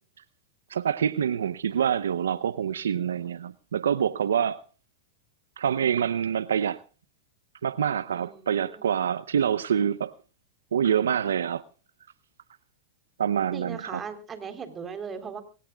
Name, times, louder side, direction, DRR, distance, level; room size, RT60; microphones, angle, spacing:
voice 1, 0.7-4.6 5.6-6.8 7.6-10.1 10.7-11.6 13.2-14.0, right 8 dB, 90° right, 0.7 m, -26 dB
voice 2, 8.1-8.9 13.5-15.4, right 6 dB, 25° right, 3.6 m, -38 dB
25.0 x 18.0 x 2.3 m
hypercardioid pair, 110°, 0 cm